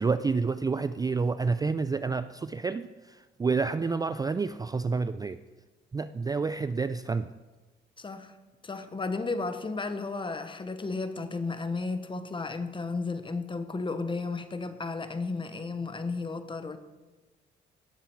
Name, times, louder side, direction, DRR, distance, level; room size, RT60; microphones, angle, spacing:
voice 1, 0.0-5.4 5.9-7.3, right 4 dB, 20° right, 13 dB, 0.3 m, -29 dB
voice 2, 8.0-8.4 8.6-16.8, left 3 dB, 25° left, 10 dB, 1.1 m, -33 dB
18.0 x 7.0 x 4.6 m, 1.2 s
cardioid pair, 90°, 20 cm